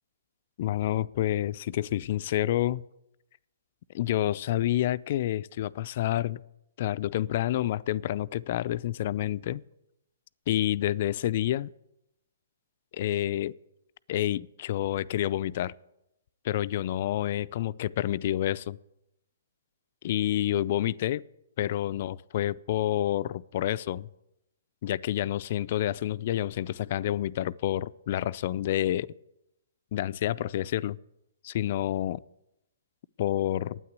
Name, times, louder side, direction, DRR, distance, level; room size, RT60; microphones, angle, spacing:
voice 1, 0.6-2.8 3.9-6.4 6.8-9.6 10.5-11.7 12.9-13.5 14.1-15.7 16.4-18.8 20.0-21.2 21.6-24.1 24.8-29.1 29.9-31.0 31.4-32.2 33.2-33.8, left 13 dB, 50° left, 0.3 m, -28 dB
9.4 x 8.9 x 8.2 m
hypercardioid pair, 130°, 0 cm